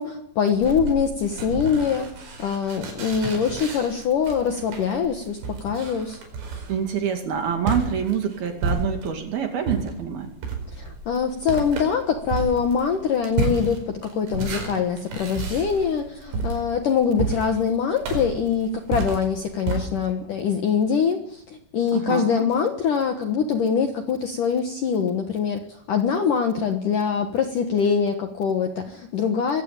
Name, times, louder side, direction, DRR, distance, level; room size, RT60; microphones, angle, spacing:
voice 1, 0.0-2.1 2.4-6.2 10.8-29.6, left 6 dB, 65° left, 5 dB, 2.2 m, -24 dB
sound 1, 0.5-9.3 9.6-19.8, right 3 dB, 85° right, 7.4 m, -31 dB
voice 2, 6.7-10.3 21.9-22.5, right 7 dB, 55° right, 4 dB, 3.9 m, -26 dB
23.0 x 16.5 x 8.8 m, 0.75 s
omnidirectional pair, 5.5 m